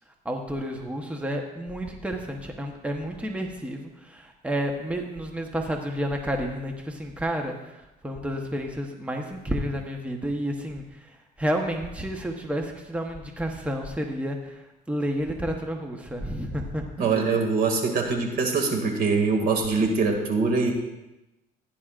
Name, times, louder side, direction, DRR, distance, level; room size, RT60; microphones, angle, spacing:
voice 1, 0.2-17.4, equal, 10° right, 2 dB, 1.0 m, -31 dB
voice 2, 17.0-20.7, right 4 dB, 60° right, 3 dB, 2.2 m, -23 dB
16.0 x 10.0 x 2.5 m, 0.98 s
cardioid pair, 110°, 17 cm